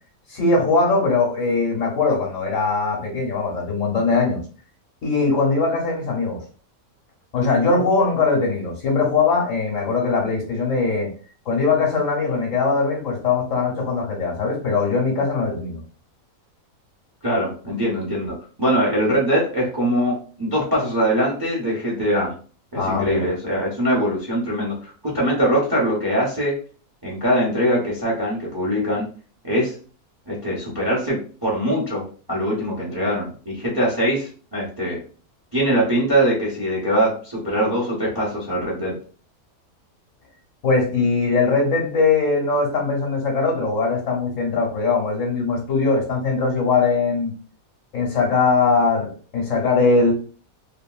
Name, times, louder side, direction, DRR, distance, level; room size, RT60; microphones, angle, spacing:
voice 1, 0.3-4.4 5.0-6.4 7.3-11.1 11.5-15.8 22.7-23.3 40.6-47.3 47.9-50.1, left 4 dB, 65° left, 0 dB, 1.2 m, -21 dB
voice 2, 17.2-22.3 22.7-26.5 27.0-29.0 29.4-29.7 30.3-35.0 35.5-39.0, equal, 20° right, -4 dB, 0.7 m, -22 dB
2.9 x 2.5 x 2.3 m, 0.39 s
omnidirectional pair, 1.6 m